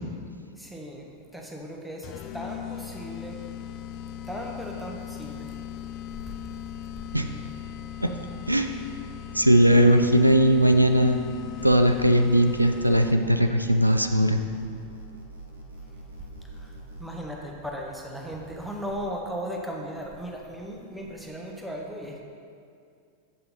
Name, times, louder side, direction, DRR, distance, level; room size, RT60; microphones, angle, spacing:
voice 1, 0.6-3.4 4.3-5.5 16.4-16.7 17.0-22.2, equal, ahead, -1 dB, 1.0 m, -37 dB
sound 1, 2.0-13.4, left 9 dB, 40° left, 0.4 m, -39 dB
voice 2, 9.3-11.2 11.6-14.4, right 1 dB, 90° right, 6 dB, 0.3 m, -19 dB
sound 2, 11.6-17.2, right 2 dB, 70° right, 1.0 m, -43 dB
7.8 x 5.6 x 4.2 m, 2.4 s
figure-of-eight pair, 90°, 0 cm